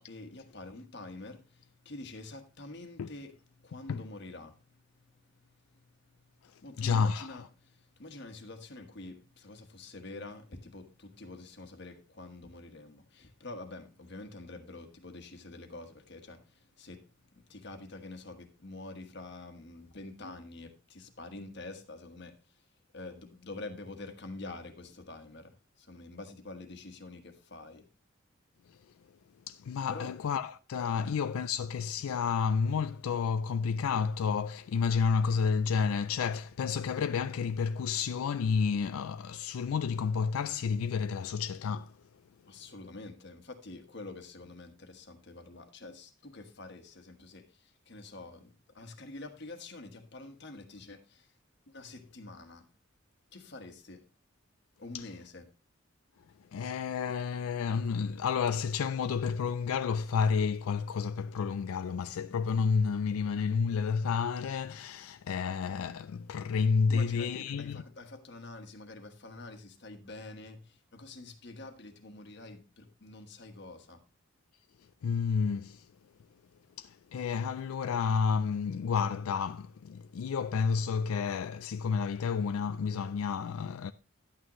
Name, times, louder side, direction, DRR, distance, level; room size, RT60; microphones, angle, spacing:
voice 1, 0.0-17.0 17.3-22.4 22.9-27.9 29.9-30.1 31.0-31.2 42.5-51.3 51.7-52.7 53.3-54.0 54.8-55.4 66.9-74.0, left 2 dB, 55° left, 1.4 m, -47 dB
voice 2, 6.8-7.4 28.7-28.8 29.5-41.9 54.9-55.1 56.5-67.8 75.0-75.9 76.8-83.9, left 6 dB, 90° left, 0.4 m, -30 dB
11.0 x 8.8 x 3.0 m
head